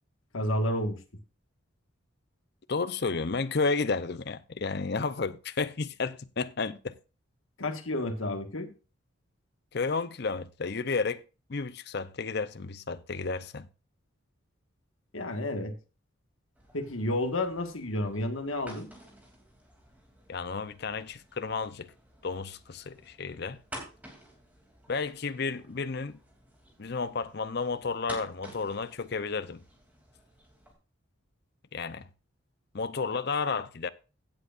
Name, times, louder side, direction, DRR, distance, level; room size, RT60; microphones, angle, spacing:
voice 1, 0.3-1.0 7.6-8.7 15.1-15.7 16.7-18.9, left 1 dB, 75° left, 1.6 m, -31 dB
voice 2, 2.7-7.0 9.7-11.2 11.5-13.7 20.3-21.9 22.2-23.6 24.9-26.2 26.8-29.6 31.7-32.1 32.7-33.9, left 4 dB, 50° left, 0.6 m, -32 dB
sound 1, 16.5-30.7, right 1 dB, 5° right, 2.8 m, -51 dB
15.5 x 8.1 x 2.5 m
head